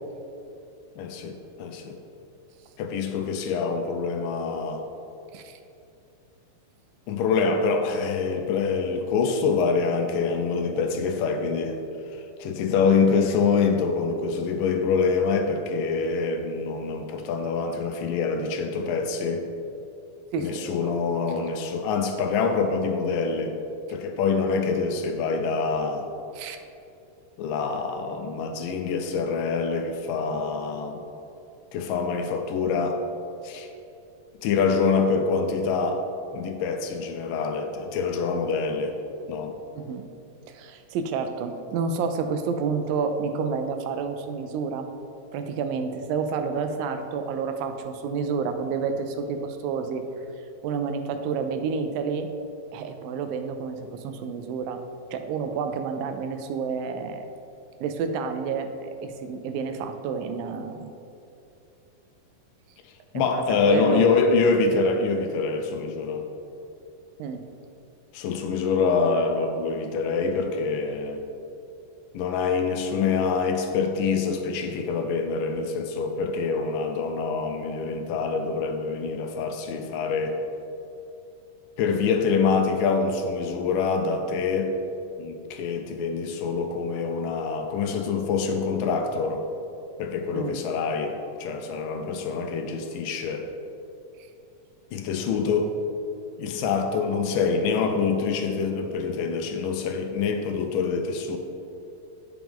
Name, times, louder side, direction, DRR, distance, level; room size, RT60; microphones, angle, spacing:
voice 1, 1.0-2.0 2.8-4.8 7.1-11.8 12.4-19.5 20.4-23.5 23.9-26.1 27.4-31.0 31.7-33.0 33.4-33.7 34.4-36.1 36.3-39.0 39.3-39.6 63.1-66.3 68.1-71.2 72.1-80.4 81.8-84.7 85.2-89.4 90.0-93.5 94.9-95.8 96.4-101.4, left 5 dB, 80° left, 5 dB, 2.2 m, -25 dB
voice 2, 20.3-20.9 26.4-26.6 39.7-40.1 40.5-44.9 45.3-50.0 50.6-52.3 52.7-54.8 55.1-57.3 57.8-60.9 63.1-64.1 67.2-67.4 90.3-90.6, right 5 dB, 85° right, 7 dB, 2.3 m, -29 dB
9.0 x 6.0 x 3.6 m, 2.7 s
omnidirectional pair, 4.0 m